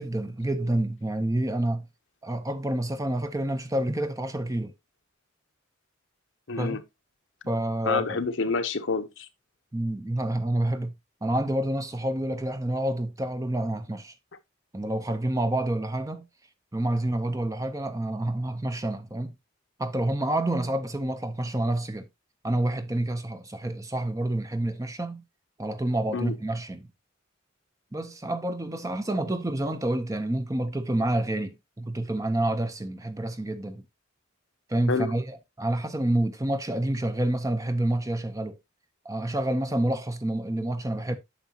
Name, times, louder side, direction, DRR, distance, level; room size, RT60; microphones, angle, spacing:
voice 1, 0.0-1.9 2.2-4.7 6.5-6.8 7.5-8.2 9.7-10.9 11.2-14.1 14.7-16.2 16.7-19.3 19.8-22.1 22.4-25.2 25.6-26.9 27.9-33.8 34.7-38.6 39.0-41.2, right 1 dB, 15° right, 0.7 m, -28 dB
voice 2, 6.5-6.8 7.9-9.3 26.1-26.3 34.9-35.1, left 4 dB, 65° left, 0.9 m, -28 dB
9.2 x 6.2 x 2.8 m
head